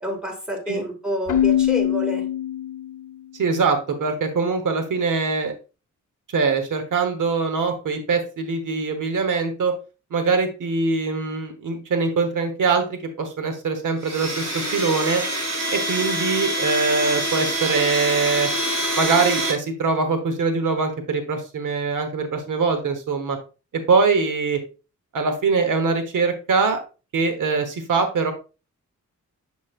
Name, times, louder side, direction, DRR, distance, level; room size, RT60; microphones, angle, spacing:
voice 1, 0.0-2.3, left 1 dB, 5° right, 1 dB, 2.1 m, -28 dB
Keyboard (musical), 1.3-3.1, left 11 dB, 85° left, 0.7 m, -22 dB
voice 2, 3.4-5.5 6.3-9.7 10.1-15.2 15.7-18.5 18.9-23.4 23.7-24.6 25.1-26.8 27.1-28.3, right 4 dB, 80° right, 6 dB, 1.2 m, -23 dB
Domestic sounds home sounds, 14.0-19.5, right 1 dB, 50° right, 2.7 m, -25 dB
7.7 x 5.3 x 2.4 m, 0.32 s
wide cardioid pair, 95°, 31 cm